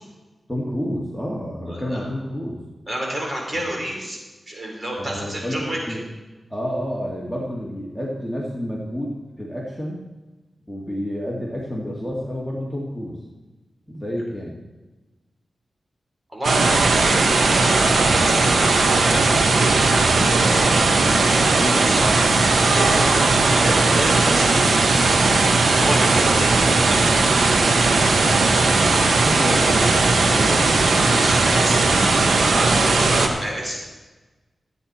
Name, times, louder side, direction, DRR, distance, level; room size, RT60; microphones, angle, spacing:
voice 1, 0.5-2.6 3.5-3.7 5.0-6.1 6.5-10.0 10.7-13.2 13.9-14.6 21.5-22.0 28.2-31.1 32.1-32.6, equal, ahead, -4 dB, 2.3 m, -30 dB
voice 2, 1.7-2.0 2.9-4.2 4.5-5.8 16.3-20.8 21.2-22.1 22.7-25.4 25.8-27.1 31.0-33.9, right 1 dB, 35° right, -1 dB, 4.1 m, -30 dB
sound 1, 16.4-33.3, right 3 dB, 80° right, 1.3 m, -17 dB
14.5 x 9.0 x 4.3 m, 1.2 s
cardioid pair, 70°, 0 cm